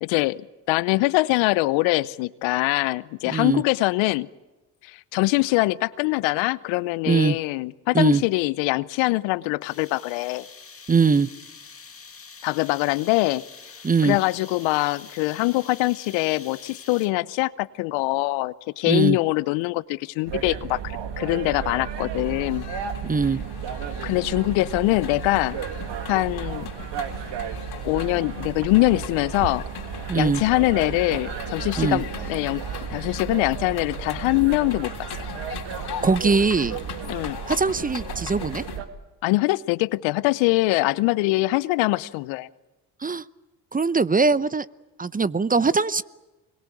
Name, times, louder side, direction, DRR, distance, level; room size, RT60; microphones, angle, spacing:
voice 1, 0.0-4.3 4.8-10.5 12.4-13.4 14.0-22.6 24.0-25.6 26.1-26.7 27.7-29.6 30.1-32.6 32.9-34.9 37.1-37.4 39.2-42.5, left 21 dB, 70° left, 20 dB, 0.8 m, -23 dB
voice 2, 3.3-3.6 7.1-7.4 7.9-8.2 10.9-11.3 13.8-14.2 18.9-19.2 23.0-23.4 30.1-30.4 31.8-32.0 36.0-36.8 37.5-38.6 43.0-43.2 43.7-44.7 45.0-46.0, right 4 dB, 20° right, 18 dB, 0.8 m, -21 dB
sound 1, 9.6-17.3, left 5 dB, 30° left, 2.1 m, -45 dB
sound 2, 20.3-38.9, right 8 dB, 60° right, 2.1 m, -33 dB
sound 3, 22.0-38.8, left 7 dB, 50° left, 3.5 m, -39 dB
25.0 x 22.5 x 8.5 m, 1.1 s
hypercardioid pair, 55°, 47 cm